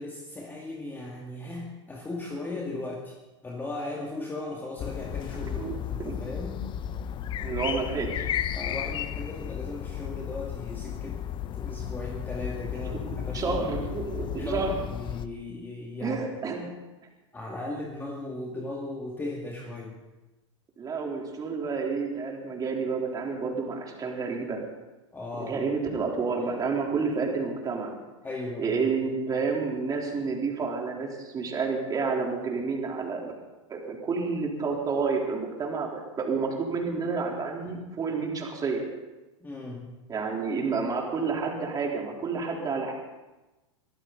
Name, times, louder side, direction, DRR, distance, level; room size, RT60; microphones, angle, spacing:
voice 1, 0.0-3.2 3.4-6.6 8.5-11.2 11.5-13.9 14.4-16.2 17.3-20.0 25.1-25.6 28.2-28.9 29.3-29.4 39.4-39.9, left 2 dB, 10° left, -2 dB, 2.2 m, -37 dB
sound 1, 4.8-15.3, left 10 dB, 30° left, 0.8 m, -34 dB
voice 2, 5.4-5.7 6.0-6.2 7.4-8.3 12.7-14.8 16.0-16.6 20.8-24.6 25.4-27.9 28.6-33.3 33.7-38.8 40.1-42.9, right 4 dB, 25° right, 0 dB, 3.7 m, -30 dB
23.5 x 14.5 x 4.0 m, 1.1 s
hypercardioid pair, 120°, 16 cm